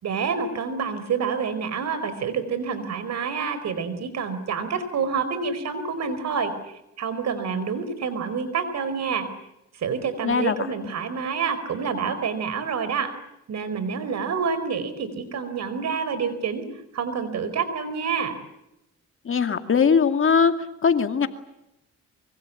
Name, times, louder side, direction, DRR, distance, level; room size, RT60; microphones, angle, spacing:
voice 1, 0.0-9.3 9.7-13.1 13.5-16.6 16.9-18.4, right 6 dB, 60° right, 13 dB, 4.7 m, -28 dB
voice 2, 10.2-10.7 19.2-20.5 20.8-21.3, left 6 dB, 45° left, 8 dB, 2.4 m, -20 dB
25.0 x 24.0 x 8.6 m, 0.87 s
cardioid pair, 90°, 30 cm